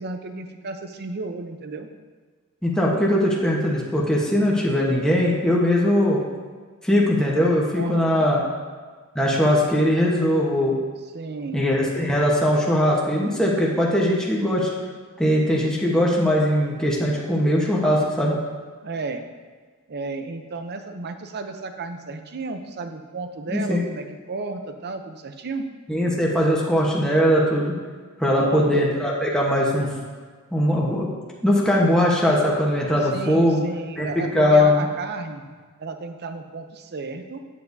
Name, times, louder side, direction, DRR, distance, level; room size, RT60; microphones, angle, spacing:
voice 1, 0.0-1.9 7.7-8.3 11.1-11.6 18.8-19.2 19.9-25.6 28.3-28.8 31.8-31.9 33.0-35.4 35.8-37.4, right 3 dB, 50° right, 7 dB, 0.6 m, -33 dB
voice 2, 2.6-6.2 6.8-8.4 9.1-10.8 11.5-14.7 15.2-18.4 23.5-23.8 25.9-27.8 28.2-29.9 30.5-31.1 31.4-33.6 34.0-34.1 34.3-34.9, left 1 dB, 5° left, -4 dB, 1.0 m, -20 dB
8.7 x 8.4 x 2.7 m, 1.5 s
head